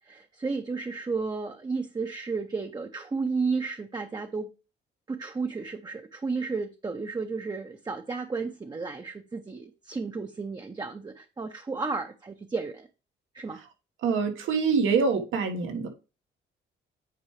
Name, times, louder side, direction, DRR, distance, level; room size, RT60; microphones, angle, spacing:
voice 1, 0.1-4.5 5.1-12.9 13.3-13.6, right 4 dB, 20° right, 5 dB, 0.7 m, -33 dB
voice 2, 14.0-15.9, right 5 dB, 85° right, 5 dB, 1.5 m, -25 dB
9.0 x 4.7 x 3.2 m, 0.31 s
cardioid pair, 90°, 20 cm